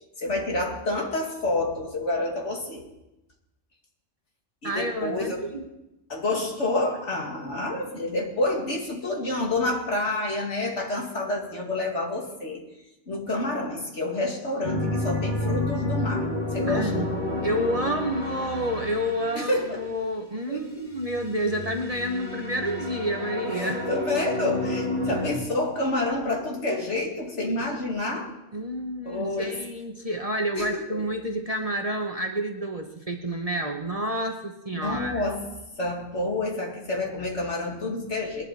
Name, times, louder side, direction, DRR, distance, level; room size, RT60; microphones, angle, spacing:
voice 1, 0.2-2.8 4.6-5.5 6.1-12.7 13.1-17.1 19.3-19.8 20.5-20.8 23.5-28.3 29.0-29.6 30.5-31.0 34.7-35.5 35.8-38.4, left 2 dB, 60° left, -1 dB, 2.7 m, -28 dB
voice 2, 4.6-5.6 16.7-23.8 25.1-25.2 28.5-35.2, right 1 dB, 30° right, 3 dB, 0.9 m, -29 dB
sound 1, 14.6-19.9 20.9-25.4, left 2 dB, 35° left, 1.9 m, -30 dB
20.5 x 11.5 x 4.2 m, 0.93 s
omnidirectional pair, 1.4 m